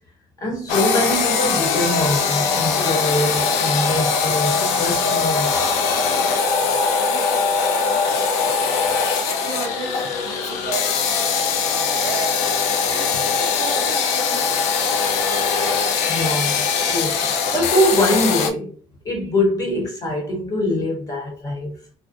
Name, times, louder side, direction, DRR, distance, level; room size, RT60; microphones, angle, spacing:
voice 1, 0.4-5.7 12.8-12.9 16.1-18.7 19.0-21.8, left 1 dB, 30° left, 0.9 m, -23 dB
sound 1, 0.7-18.5, left 5 dB, 80° left, 0.4 m, -21 dB
voice 2, 6.5-12.5 12.9-15.1, right 4 dB, 65° right, 0.7 m, -36 dB
2.4 x 2.1 x 2.5 m
cardioid pair, 145°, 12 cm